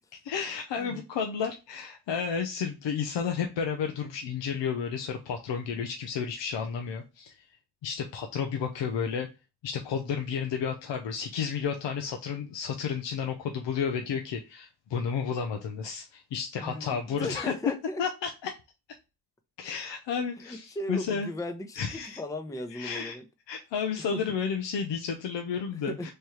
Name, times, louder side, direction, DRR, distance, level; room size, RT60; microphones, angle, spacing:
voice 1, 0.3-7.5 7.8-9.3 9.6-17.5 18.0-18.5 19.6-21.3 21.8-22.2 22.7-23.2 23.5-26.1, left 6 dB, 85° left, 4 dB, 0.6 m, -32 dB
voice 2, 16.6-18.0 20.4-23.2 24.1-24.2 25.7-26.1, left 1 dB, 10° left, 6 dB, 0.6 m, -37 dB
3.3 x 2.3 x 4.2 m, 0.28 s
cardioid pair, 55°, 43 cm